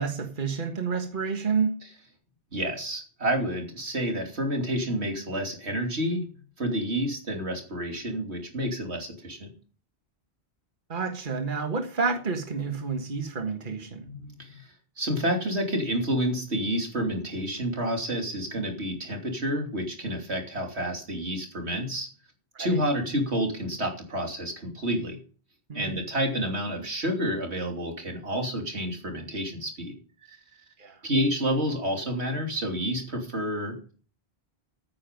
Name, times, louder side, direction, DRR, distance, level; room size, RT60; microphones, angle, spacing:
voice 1, 0.0-1.7 10.9-14.0 22.5-22.8 25.7-26.0 30.8-31.0, right 5 dB, 50° right, 1.7 m, -29 dB
voice 2, 2.5-6.2 6.6-9.5 14.0-22.1 22.6-25.2 25.7-29.9 30.3-30.4 31.0-33.9, equal, 90° right, 3.3 m, -29 dB
15.0 x 9.3 x 5.3 m
omnidirectional pair, 1.1 m